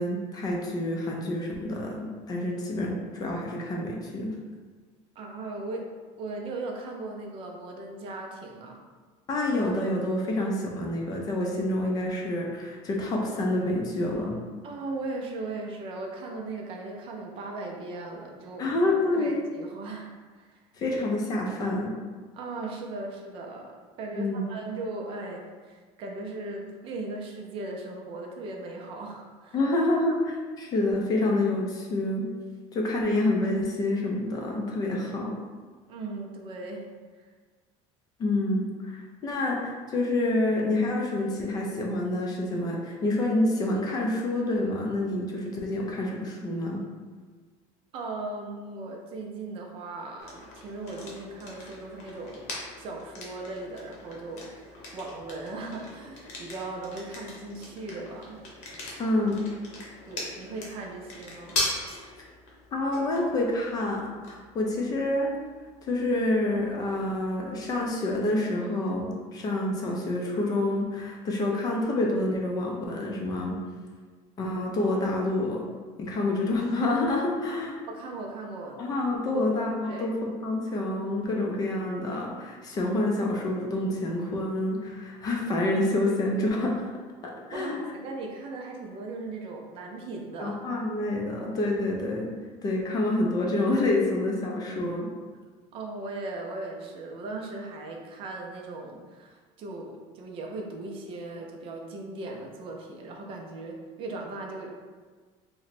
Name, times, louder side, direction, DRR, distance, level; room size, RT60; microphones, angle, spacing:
voice 1, 0.0-4.3 9.3-14.4 18.6-19.4 20.8-21.9 24.1-24.4 29.5-32.3 32.7-35.4 38.2-46.8 59.0-59.4 62.2-62.3 62.7-65.3 65.8-73.6 74.4-75.6 76.0-77.8 78.8-86.8 87.2-87.8 90.4-92.3 92.6-95.1, left 2 dB, 25° left, -1 dB, 0.4 m, -27 dB
voice 2, 5.2-5.9 6.2-8.8 14.6-18.7 19.1-20.6 22.3-29.6 35.9-36.9 37.2-37.3 47.9-58.4 60.1-61.6 77.5-77.6 77.9-78.8 79.3-79.4 79.8-80.1 87.5-90.6 95.7-104.7, right 2 dB, 40° right, 0 dB, 0.4 m, -38 dB
sound 1, 50.2-67.9, left 2 dB, 50° left, 0.8 m, -40 dB
3.0 x 2.1 x 4.0 m, 1.5 s
cardioid pair, 175°, 14 cm